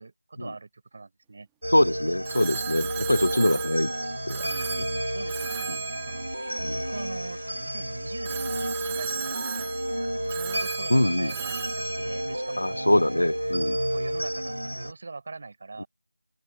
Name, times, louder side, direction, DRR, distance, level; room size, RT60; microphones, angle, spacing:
voice 1, 0.0-1.5 4.5-5.8 6.1-9.8 10.3-12.9 13.9-15.9, right 3 dB, 30° right, 4.7 m, -42 dB
sound 1, 1.6-14.9, equal, 80° right, 1.0 m, -31 dB
voice 2, 1.7-3.9 4.3-4.5 5.7-5.8 6.6-6.8 10.9-11.3 12.6-13.8 15.8-15.9, left 1 dB, 65° left, 0.4 m, -23 dB
Telephone, 2.2-7.5 8.2-13.1, right 34 dB, 5° right, 1.4 m, -38 dB
open air
figure-of-eight pair, 170°, 0 cm